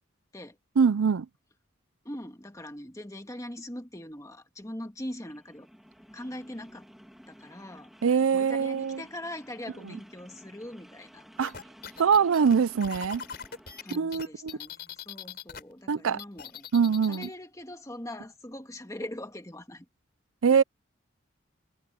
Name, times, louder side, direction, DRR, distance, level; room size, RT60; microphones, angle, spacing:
voice 1, 0.8-1.3 8.0-9.0 11.4-11.5 12.0-13.2 13.9-14.5 15.9-16.2 16.7-17.3 20.4-20.6, right 6 dB, 80° right, 0.5 m, -23 dB
voice 2, 2.0-5.7 6.1-6.9 7.3-7.9 8.3-11.2 13.8-16.7 17.1-19.9 20.5-20.6, left 1 dB, 15° left, 1.6 m, -41 dB
sound 1, 5.1-14.0, equal, ahead, 2.5 m, -54 dB
sound 2, 11.4-15.6 15.9-17.3, left 7 dB, 50° left, 4.5 m, -41 dB
head